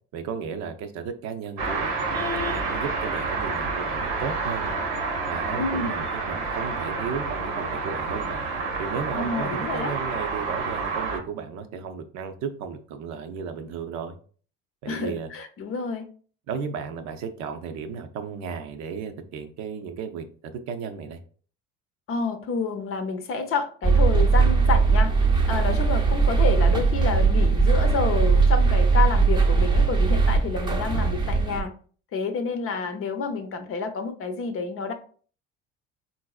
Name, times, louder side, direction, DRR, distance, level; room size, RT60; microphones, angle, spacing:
voice 1, 0.1-4.8 5.3-8.4 8.8-14.2 14.8-15.3 16.5-21.2, right 6 dB, 65° right, 7 dB, 0.6 m, -34 dB
sound 1, 1.6-11.2, right 4 dB, 85° right, 1.1 m, -29 dB
voice 2, 5.6-5.9 9.1-9.9 14.9-16.1 22.1-25.1 25.5-31.7 32.1-34.9, left 4 dB, 45° left, 7 dB, 0.6 m, -29 dB
sound 2, 23.8-31.6, right 4 dB, 15° right, 0.6 m, -20 dB
3.8 x 2.5 x 2.3 m, 0.43 s
supercardioid pair, 85°, 30 cm